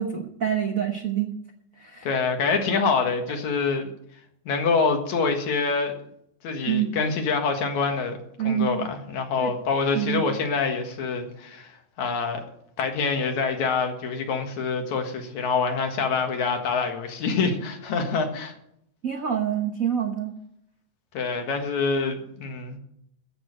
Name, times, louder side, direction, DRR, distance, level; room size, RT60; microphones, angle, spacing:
voice 1, 0.0-1.3 1.8-2.1 6.7-7.0 8.4-8.8 9.4-9.5 9.9-10.2 19.0-20.3, right 9 dB, 85° right, 4 dB, 0.7 m, -26 dB
voice 2, 2.0-3.9 4.5-5.9 6.4-8.2 8.4-12.4 12.8-18.5 21.1-22.8, left 4 dB, 75° left, 4 dB, 3.0 m, -26 dB
15.0 x 6.4 x 8.8 m, 0.74 s
omnidirectional pair, 3.3 m